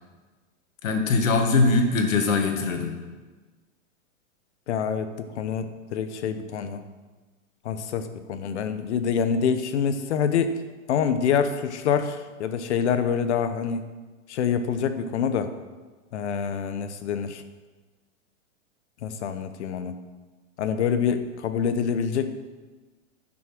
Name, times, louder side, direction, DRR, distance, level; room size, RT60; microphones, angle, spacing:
voice 1, 0.8-3.0, left 3 dB, 80° left, 4 dB, 2.0 m, -22 dB
voice 2, 4.7-6.8 7.6-10.6 10.9-13.9 14.3-15.5 16.1-17.4 19.0-20.0 20.6-22.3, left 7 dB, 60° left, 10 dB, 1.0 m, -26 dB
11.0 x 6.3 x 6.1 m, 1.3 s
supercardioid pair, 170°, 39 cm